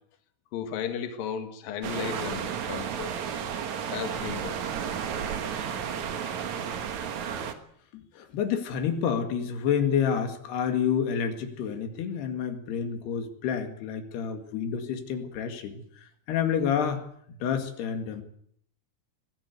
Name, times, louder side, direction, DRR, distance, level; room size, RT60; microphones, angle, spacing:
voice 1, 0.5-3.1 3.9-4.6, left 8 dB, 65° left, 3.4 m, -34 dB
sound 1, 1.8-7.5, right 7 dB, 55° right, 2.5 m, -32 dB
voice 2, 8.2-15.8 16.3-17.0 17.4-18.2, left 7 dB, 90° left, 4.2 m, -28 dB
23.5 x 17.0 x 8.2 m
omnidirectional pair, 4.5 m